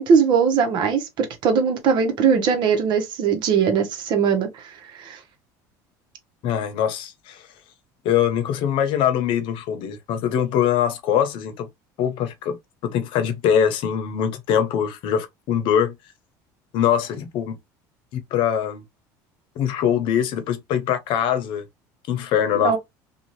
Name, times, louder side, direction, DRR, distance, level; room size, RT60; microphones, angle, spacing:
voice 1, 0.0-5.2 22.6-22.8, right 6 dB, 55° right, 1.0 m, -20 dB
voice 2, 6.4-7.4 8.0-11.7 12.0-15.9 16.7-17.6 18.1-18.8 19.6-21.6 22.1-22.7, left 9 dB, 65° left, 0.8 m, -23 dB
2.7 x 2.4 x 3.0 m
supercardioid pair, 105°, 9 cm